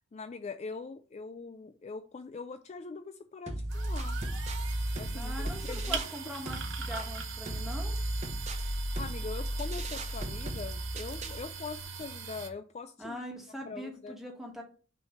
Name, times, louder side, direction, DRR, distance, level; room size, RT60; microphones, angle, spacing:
voice 1, 0.1-4.2 4.9-6.0 9.0-13.2 13.6-14.2, left 4 dB, 35° left, 0.3 m, -42 dB
sound 1, 3.5-6.2 6.5-11.5, right 1 dB, 35° right, 0.8 m, -35 dB
sound 2, 3.7-12.5, right 6 dB, 75° right, 1.0 m, -41 dB
voice 2, 5.1-8.0 13.0-14.6, equal, ahead, 1.5 m, -42 dB
6.1 x 3.2 x 5.5 m
head